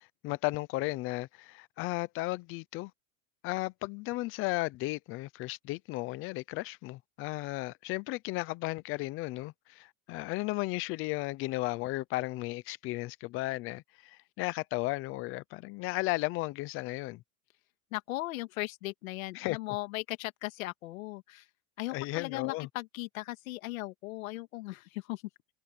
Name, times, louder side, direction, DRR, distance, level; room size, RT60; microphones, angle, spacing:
voice 1, 0.0-2.9 3.4-17.2 19.3-19.6 21.9-22.7, left 20 dB, 30° left, 0.6 m, -35 dB
voice 2, 17.9-21.5 21.8-25.2, left 19 dB, 80° left, 2.5 m, -38 dB
supercardioid pair, 155°, 41 cm